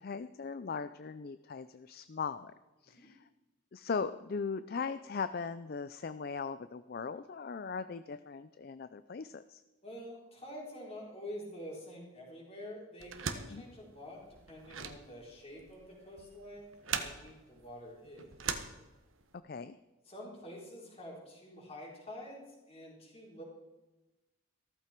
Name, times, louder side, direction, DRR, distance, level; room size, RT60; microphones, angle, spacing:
voice 1, 0.0-2.5 2.8-3.2 3.7-9.6 13.5-13.7 19.4-19.8, left 5 dB, 50° left, 13 dB, 0.4 m, -39 dB
voice 2, 9.8-18.6 20.0-23.4, equal, 30° left, -3 dB, 4.3 m, -47 dB
sound 1, 13.0-19.3, right 6 dB, 80° right, 1.3 m, -41 dB
15.0 x 14.0 x 4.5 m, 1.1 s
head